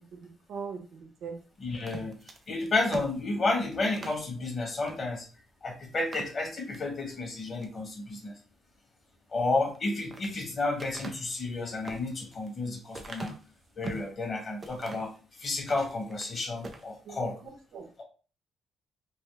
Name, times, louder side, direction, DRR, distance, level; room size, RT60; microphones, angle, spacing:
voice 1, 0.1-1.4 17.0-17.9, right 5 dB, 70° right, 3 dB, 0.8 m, -41 dB
voice 2, 1.6-2.2 2.5-5.2 5.6-8.4 9.3-13.3 13.8-15.1 15.4-17.3, left 2 dB, 45° left, -1 dB, 1.6 m, -31 dB
sound 1, 1.7-4.3 4.8-5.0 5.4-5.5 5.9-6.9 7.4-7.8 9.6-10.3 10.8-14.1 14.6-15.2 15.6-16.3 16.6-16.9, right 3 dB, 35° right, 0.6 m, -42 dB
3.1 x 2.3 x 3.1 m, 0.36 s
cardioid pair, 90°, 0 cm